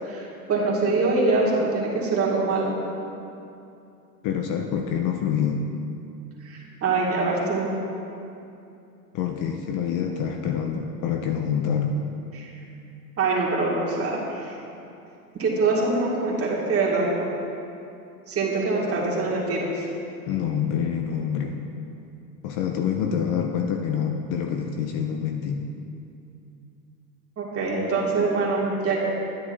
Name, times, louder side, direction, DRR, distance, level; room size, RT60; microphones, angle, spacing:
voice 1, 0.0-2.7 6.4-7.7 12.3-12.5 13.2-14.6 15.4-17.2 18.3-19.9 27.4-29.0, right 3 dB, 30° right, -5 dB, 2.2 m, -24 dB
voice 2, 4.2-5.7 9.1-12.0 20.3-21.6 22.4-25.7, left 7 dB, 40° left, 4 dB, 0.6 m, -26 dB
10.5 x 9.4 x 2.7 m, 2.7 s
hypercardioid pair, 105°, 47 cm